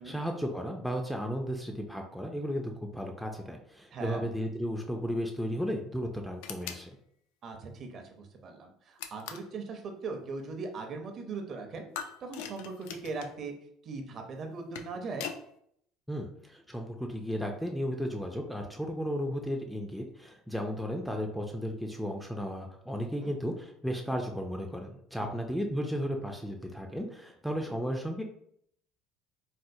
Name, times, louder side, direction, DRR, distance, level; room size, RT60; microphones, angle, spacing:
voice 1, 0.0-6.9 16.1-28.2, equal, ahead, 3 dB, 0.3 m, -34 dB
voice 2, 3.9-4.3 7.4-11.9 12.2-13.5 13.8-15.3 23.2-23.3 25.2-25.3, right 4 dB, 40° right, 4 dB, 0.6 m, -39 dB
sound 1, 6.4-6.9 9.0-9.5 11.9-13.3 14.5-15.4, left 8 dB, 85° left, 0.3 m, -41 dB
4.2 x 2.0 x 2.6 m, 0.69 s
cardioid pair, 130°, 0 cm